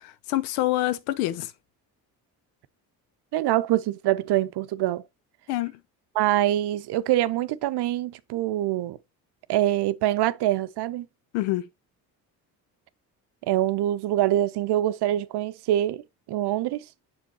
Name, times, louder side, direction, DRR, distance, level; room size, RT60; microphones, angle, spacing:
voice 1, 0.0-1.5 5.5-5.7 11.3-11.7, left 16 dB, 85° left, 0.6 m, -26 dB
voice 2, 3.3-5.0 6.1-9.0 9.5-11.1 13.4-16.0 16.3-16.8, right 13 dB, 60° right, 0.6 m, -24 dB
7.5 x 5.1 x 2.7 m
hypercardioid pair, 50°, 46 cm